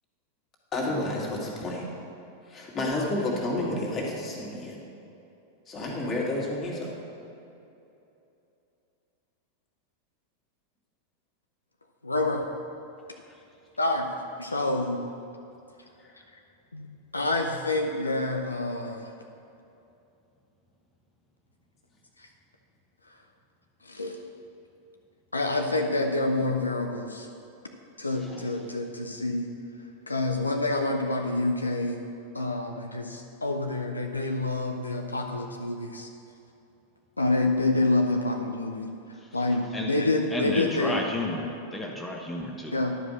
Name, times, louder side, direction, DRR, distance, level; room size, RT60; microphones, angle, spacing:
voice 1, 0.7-1.9 2.5-4.8 5.7-7.0 16.0-16.1, left 2 dB, 30° left, -3 dB, 2.1 m, -30 dB
voice 2, 12.0-12.5 13.8-14.1 14.4-15.0 16.7-16.9 17.1-19.1 23.8-24.2 25.3-27.3 28.0-29.5 30.1-32.0 32.3-36.1 37.2-38.9 39.3-41.0 42.7-43.0, left 2 dB, 80° left, 3 dB, 0.6 m, -27 dB
voice 3, 40.3-42.7, left 1 dB, 5° left, -2 dB, 1.0 m, -32 dB
11.0 x 5.1 x 6.5 m, 2.8 s
figure-of-eight pair, 90°, 0 cm